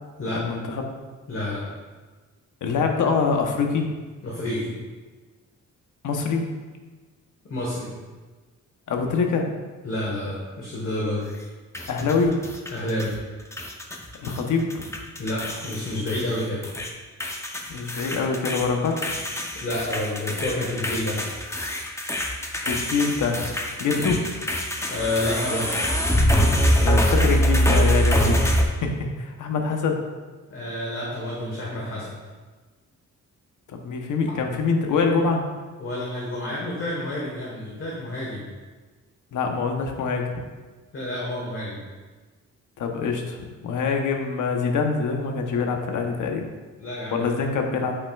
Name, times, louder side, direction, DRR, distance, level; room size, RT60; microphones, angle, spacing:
voice 1, 0.3-0.8 2.6-3.9 6.0-6.5 8.9-9.5 11.9-12.4 14.2-14.7 17.7-19.0 22.6-23.5 23.8-24.2 26.8-30.0 33.7-35.4 39.3-40.3 42.8-46.5 47.1-48.0, left 5 dB, 75° left, 3 dB, 0.9 m, -25 dB
voice 2, 1.3-1.6 4.2-4.7 7.5-7.9 9.8-11.2 12.7-13.1 15.2-16.6 19.5-21.2 23.9-24.2 24.9-25.8 30.5-32.2 35.8-38.4 40.9-41.8 46.8-47.2, left 1 dB, 40° left, -5 dB, 1.3 m, -29 dB
sound 1, 11.7-13.2 13.5-14.4 14.7-16.9 17.2-28.6, equal, 10° left, 0.6 m, -24 dB
8.4 x 5.6 x 2.4 m, 1.3 s
cardioid pair, 120°, 31 cm